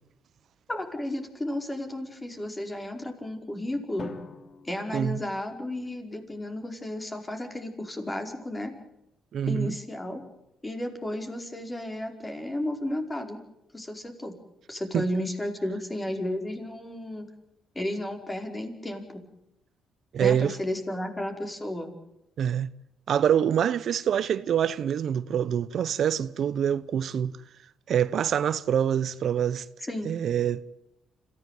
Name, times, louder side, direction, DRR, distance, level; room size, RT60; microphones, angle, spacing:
voice 1, 0.7-4.2 4.6-8.7 9.5-10.2 10.6-13.4 13.7-14.4 14.7-17.3 17.7-19.2 20.2-21.9 29.8-30.1, left 1 dB, 15° left, 5.0 m, -33 dB
Drum, 4.0-6.1, left 4 dB, 45° left, 3.1 m, -45 dB
voice 2, 9.3-9.7 14.9-15.0 20.1-20.5 22.4-22.7 23.1-27.3 27.9-29.7 30.0-30.6, right 9 dB, 65° right, 0.9 m, -25 dB
27.0 x 15.5 x 9.3 m
cardioid pair, 90°, 0 cm